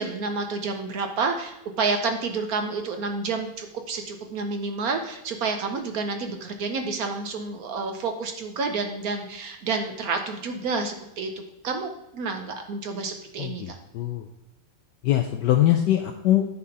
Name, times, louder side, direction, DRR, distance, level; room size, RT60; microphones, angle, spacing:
voice 1, 0.0-11.3 11.6-13.8, right 4 dB, 60° right, 6 dB, 1.0 m, -29 dB
voice 2, 13.4-14.3 15.0-16.5, left 12 dB, 75° left, 5 dB, 1.1 m, -22 dB
9.5 x 4.2 x 5.3 m, 0.90 s
omnidirectional pair, 2.2 m